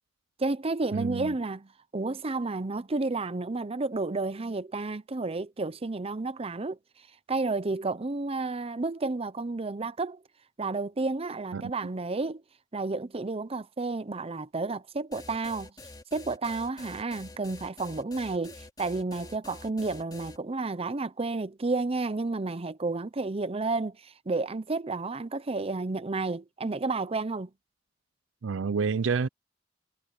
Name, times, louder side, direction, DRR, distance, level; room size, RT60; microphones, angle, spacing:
voice 1, 0.4-6.8 7.3-10.2 10.6-12.4 12.7-15.7 16.1-27.5, right 3 dB, 30° right, 0.7 m, -31 dB
voice 2, 0.9-1.3 11.5-11.7 28.4-29.3, right 5 dB, 80° right, 0.5 m, -28 dB
sound 1, 15.1-20.4, left 2 dB, 20° left, 2.6 m, -47 dB
head